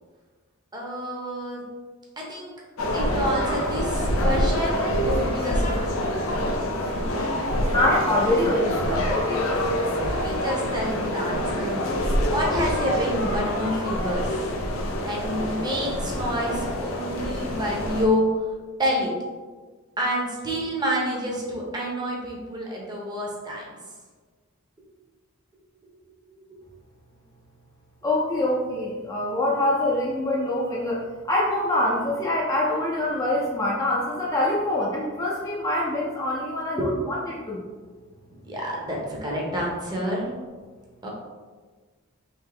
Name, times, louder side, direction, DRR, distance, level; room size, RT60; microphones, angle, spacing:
voice 1, 0.7-1.6 2.2-2.5 2.9-5.9 10.1-11.8 12.3-14.3 15.0-18.5 18.8-19.1 20.0-23.6 36.8-36.9 38.4-40.3 41.0-41.1, equal, 20° right, -3 dB, 0.8 m, -28 dB
sound 1, 2.8-18.1, equal, 85° left, 0.6 m, -26 dB
voice 2, 7.7-9.5 28.0-37.6, left 1 dB, 15° left, -5 dB, 0.5 m, -25 dB
3.4 x 2.7 x 3.3 m, 1.4 s
head